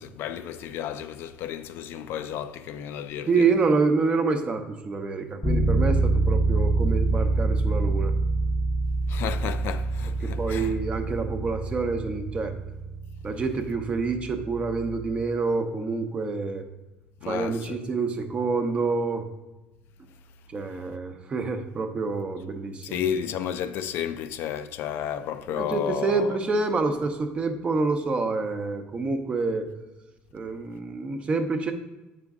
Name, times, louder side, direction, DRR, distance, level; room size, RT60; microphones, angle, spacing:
voice 1, 0.0-3.4 9.1-10.7 17.2-17.8 22.8-26.4, left 9 dB, 65° left, 0.4 m, -32 dB
voice 2, 3.3-8.1 10.2-12.6 13.2-16.6 17.2-19.3 20.5-23.1 25.5-29.7 30.3-31.7, right 4 dB, 25° right, 0.7 m, -27 dB
sound 1, 5.4-15.2, right 2 dB, 15° left, 0.8 m, -26 dB
8.0 x 5.1 x 3.6 m
cardioid pair, 140°, 4 cm